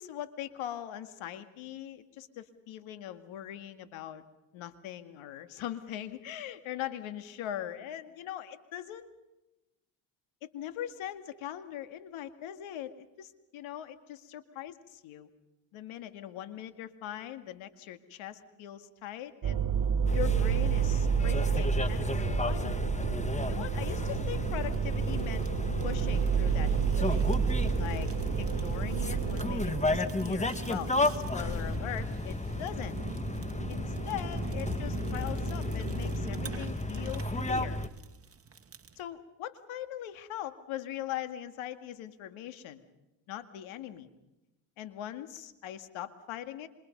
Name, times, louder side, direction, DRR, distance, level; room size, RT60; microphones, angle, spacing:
voice 1, 0.0-4.2 4.5-9.1 10.4-14.7 15.0-15.3 15.7-19.7 20.1-22.8 23.5-25.5 25.8-27.3 27.8-28.1 28.4-33.0 33.7-37.8 39.0-42.8 43.3-44.1 44.8-46.7, left 11 dB, 75° left, 9 dB, 2.2 m, -41 dB
sound 1, 19.4-30.0, right 9 dB, 45° right, 1.7 m, -30 dB
sound 2, 20.1-37.9, left 2 dB, 15° left, 1.7 m, -33 dB
Fire, 23.9-39.0, right 6 dB, 30° right, 2.5 m, -43 dB
27.0 x 26.5 x 5.4 m, 0.97 s
supercardioid pair, 75°, 49 cm